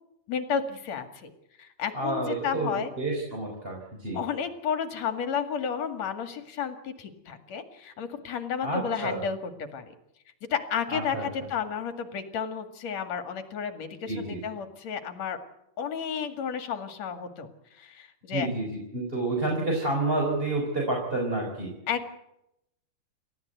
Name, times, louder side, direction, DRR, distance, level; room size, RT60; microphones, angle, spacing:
voice 1, 0.3-1.3 1.6-2.9 4.1-9.4 9.7-9.9 10.5-15.4 15.8-18.5 21.9-22.2, left 7 dB, 55° left, 8 dB, 3.1 m, -32 dB
voice 2, 1.9-4.2 8.6-9.2 10.9-11.3 14.0-14.4 18.3-21.7, right 2 dB, 15° right, -1 dB, 4.5 m, -29 dB
30.0 x 14.5 x 8.1 m, 0.83 s
omnidirectional pair, 3.7 m